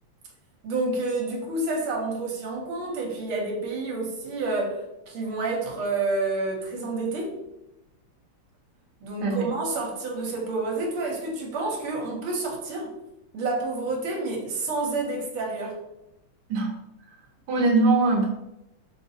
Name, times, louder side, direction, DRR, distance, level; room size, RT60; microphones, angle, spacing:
voice 1, 0.6-7.4 9.0-12.9 13.3-15.8, right 3 dB, 80° right, -1 dB, 1.5 m, -29 dB
voice 2, 17.5-18.3, right 3 dB, 60° right, -1 dB, 1.2 m, -21 dB
4.2 x 2.4 x 2.6 m, 0.91 s
omnidirectional pair, 2.4 m